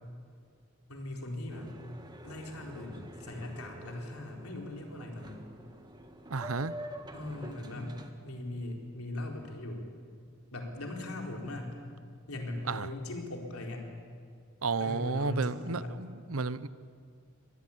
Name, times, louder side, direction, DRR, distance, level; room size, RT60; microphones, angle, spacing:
voice 1, 0.9-1.7 2.2-5.5 7.1-9.9 10.5-11.8 12.3-13.9 14.8-16.0, left 1 dB, 90° left, 1 dB, 4.2 m, -39 dB
Boat Water vehicle, 1.5-8.1, equal, 20° right, 1.6 m, -47 dB
voice 2, 6.3-6.7 12.7-12.9 14.6-16.7, right 4 dB, 80° right, 16 dB, 0.9 m, -32 dB
25.0 x 20.0 x 8.7 m, 2.2 s
head